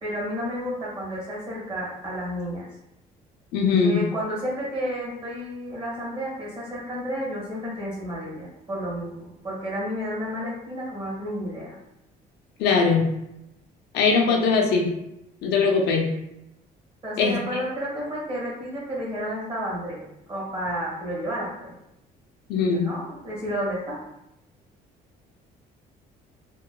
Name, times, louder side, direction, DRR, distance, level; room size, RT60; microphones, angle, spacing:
voice 1, 0.0-2.7 3.6-11.7 17.0-20.0 20.3-21.7 22.6-24.0, equal, 30° right, -5 dB, 1.3 m, -31 dB
voice 2, 3.5-4.0 12.6-13.0 13.9-14.9 15.4-16.0 17.2-17.4 22.5-22.9, left 5 dB, 75° left, 1 dB, 0.5 m, -20 dB
2.9 x 2.2 x 2.2 m, 0.85 s
cardioid pair, 110°, 17 cm